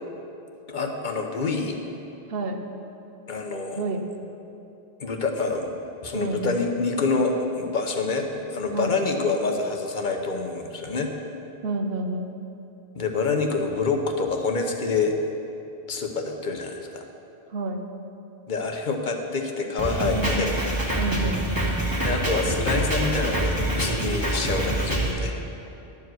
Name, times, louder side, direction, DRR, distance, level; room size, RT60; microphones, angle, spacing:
voice 1, 0.7-1.8 3.3-3.8 5.0-11.1 12.9-15.2 15.9-17.0 18.5-20.5 22.0-25.3, left 4 dB, 50° left, 4 dB, 1.0 m, -27 dB
voice 2, 2.3-2.6 3.7-4.1 6.1-6.6 8.7-9.0 11.6-12.4 17.5-17.8 20.1-20.5 21.0-21.4, right 2 dB, 70° right, 5 dB, 1.0 m, -29 dB
Drum kit, 19.8-25.1, right 1 dB, 20° right, 1.6 m, -26 dB
12.0 x 4.9 x 7.7 m, 2.9 s
omnidirectional pair, 1.0 m